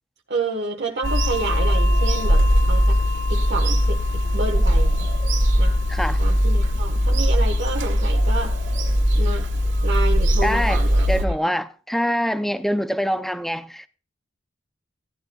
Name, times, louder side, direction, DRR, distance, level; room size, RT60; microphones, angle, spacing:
voice 1, 0.3-3.0 3.3-5.1 5.6-5.8 6.2-8.6 9.1-9.5 9.8-11.6, right 3 dB, 55° right, 1.3 m, -29 dB
Bird vocalization bird call bird song / Telephone, 1.0-11.3, equal, 70° right, 1.9 m, -19 dB
voice 2, 10.4-13.9, equal, ahead, 0.4 m, -25 dB
16.5 x 12.0 x 2.3 m
head